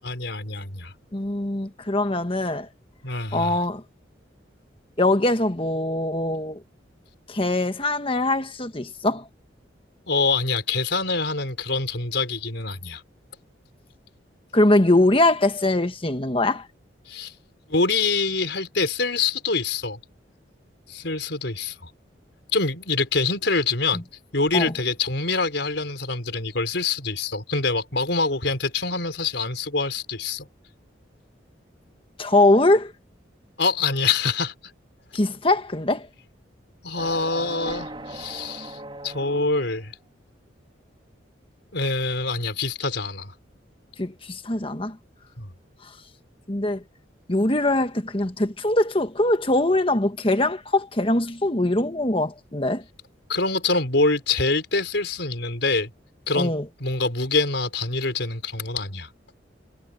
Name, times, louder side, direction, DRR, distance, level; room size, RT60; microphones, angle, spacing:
voice 1, 0.0-0.9 3.0-3.6 10.1-13.0 17.1-17.3 17.7-20.0 20.9-21.9 22.5-24.0 24.3-30.5 33.6-34.5 36.8-38.8 39.0-39.9 41.7-43.3 45.4-45.5 53.3-55.9 56.3-56.5 56.8-59.1, left 3 dB, 70° left, 4.8 m, -25 dB
voice 2, 1.1-2.7 3.3-3.8 5.0-6.6 7.3-9.3 14.5-16.7 23.9-24.0 24.5-24.7 32.2-32.9 35.1-36.1 44.0-45.0 46.5-46.8 47.3-52.8 56.3-56.7, left 2 dB, 30° left, 1.5 m, -22 dB
sound 1, 36.9-39.8, right 2 dB, 25° right, 2.9 m, -38 dB
head